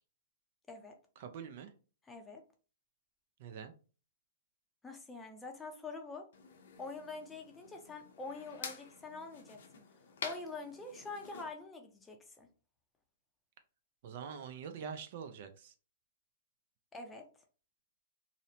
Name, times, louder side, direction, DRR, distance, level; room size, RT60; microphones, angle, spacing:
voice 1, 1.2-1.7 3.4-3.7 14.0-15.7, right 7 dB, 55° right, 0.4 m, -45 dB
voice 2, 2.1-2.4 4.8-6.3 6.8-9.6 10.2-12.5 16.9-17.3, left 3 dB, 10° left, 0.5 m, -45 dB
sound 1, 6.3-11.5, left 6 dB, 65° left, 0.6 m, -48 dB
2.6 x 2.0 x 2.7 m
hypercardioid pair, 125°, 0 cm